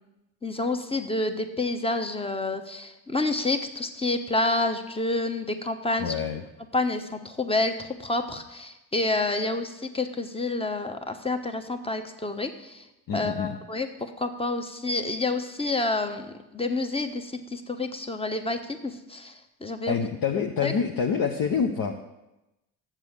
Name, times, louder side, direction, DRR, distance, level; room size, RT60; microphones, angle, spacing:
voice 1, 0.4-6.1 6.7-12.9 13.1-16.3 16.5-20.0 20.6-20.7, left 2 dB, 10° left, 7 dB, 1.1 m, -28 dB
voice 2, 6.0-6.4 13.1-13.5 19.9-21.9, left 6 dB, 45° left, 3 dB, 0.9 m, -26 dB
7.4 x 7.4 x 6.7 m, 0.96 s
hypercardioid pair, 50°, 47 cm